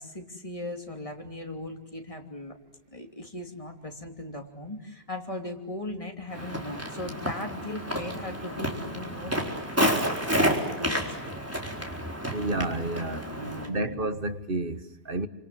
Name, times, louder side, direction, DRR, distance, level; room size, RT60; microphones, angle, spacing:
voice 1, 0.0-2.6 2.9-9.9 10.8-11.2 13.3-14.0, left 1 dB, 30° left, 3.0 m, -38 dB
Walk footsteps, 6.3-13.7, equal, 15° right, 4.3 m, -30 dB
voice 2, 12.3-13.2 13.7-15.3, right 2 dB, 60° right, 1.7 m, -30 dB
28.5 x 26.5 x 7.7 m
omnidirectional pair, 1.1 m